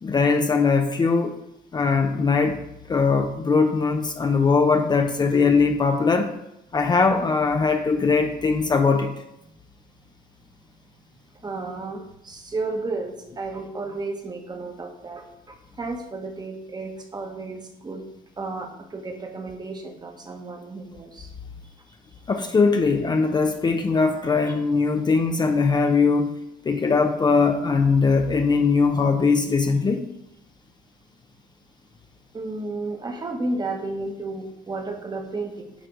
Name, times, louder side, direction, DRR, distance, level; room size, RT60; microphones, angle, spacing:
voice 1, 0.0-1.4 1.7-2.6 2.9-6.3 6.7-9.1 22.3-26.3 26.6-30.0, left 4 dB, 25° left, 5 dB, 0.6 m, -20 dB
voice 2, 11.4-18.1 18.4-21.3 32.3-35.7, right 3 dB, 25° right, 4 dB, 1.2 m, -32 dB
8.9 x 3.4 x 5.1 m, 0.85 s
cardioid pair, 110°, 17 cm